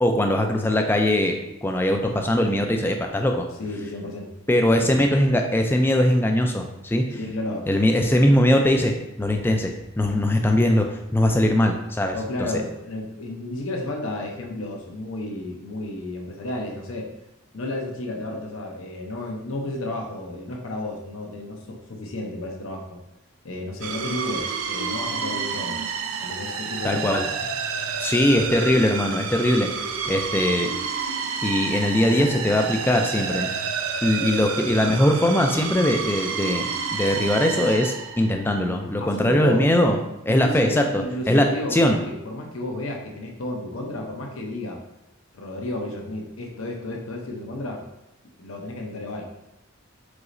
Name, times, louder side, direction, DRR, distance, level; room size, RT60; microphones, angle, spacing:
voice 1, 0.0-1.3 1.6-3.5 4.5-7.0 7.7-8.9 9.2-12.2 12.5-12.6 26.8-27.3 28.0-30.7 31.4-33.5 34.0-40.0 40.3-42.0, left 1 dB, 10° left, 3 dB, 0.3 m, -21 dB
voice 2, 3.6-4.3 4.7-5.2 7.2-7.9 12.1-17.1 17.5-23.0 23.4-25.8 26.2-27.1 39.0-39.7 40.3-44.8 45.3-47.9 48.4-49.3, left 1 dB, 75° left, 1 dB, 0.7 m, -32 dB
sound 1, 23.8-38.6, right 6 dB, 80° right, 0.4 m, -29 dB
4.8 x 4.0 x 2.6 m, 0.89 s
head